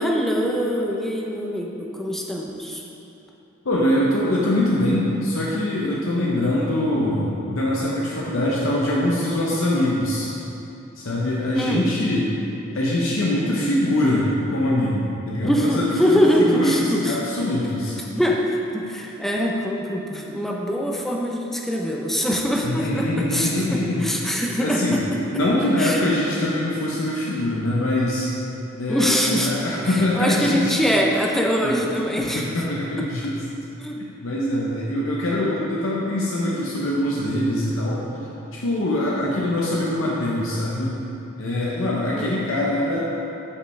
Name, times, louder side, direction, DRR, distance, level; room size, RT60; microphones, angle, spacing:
voice 1, 0.0-2.8 11.5-11.9 15.4-17.2 18.1-25.2 25.8-26.0 28.9-29.5 29.8-32.4 33.8-34.0 35.3-35.6 42.1-42.4, equal, ahead, -2 dB, 0.6 m, -23 dB
voice 2, 3.6-10.3 11.0-12.3 12.7-16.2 16.5-18.0 22.6-25.0 25.3-28.3 28.8-30.7 31.6-31.8 32.2-33.4 34.0-38.0 38.5-41.0 41.4-43.0, left 1 dB, 80° left, -5 dB, 0.8 m, -23 dB
8.2 x 5.4 x 3.3 m, 3.0 s
head